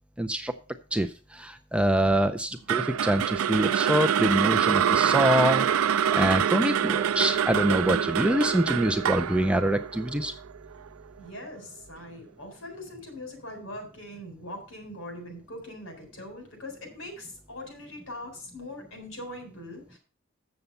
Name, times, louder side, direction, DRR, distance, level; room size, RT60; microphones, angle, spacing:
voice 1, 0.2-0.5 0.9-10.3, right 1 dB, 5° right, 6 dB, 0.4 m, -25 dB
sound 1, 2.7-10.9, right 9 dB, 85° right, 0.4 m, -25 dB
voice 2, 11.2-20.0, left 1 dB, 65° left, 4 dB, 3.9 m, -41 dB
7.9 x 7.1 x 5.4 m, 0.35 s
head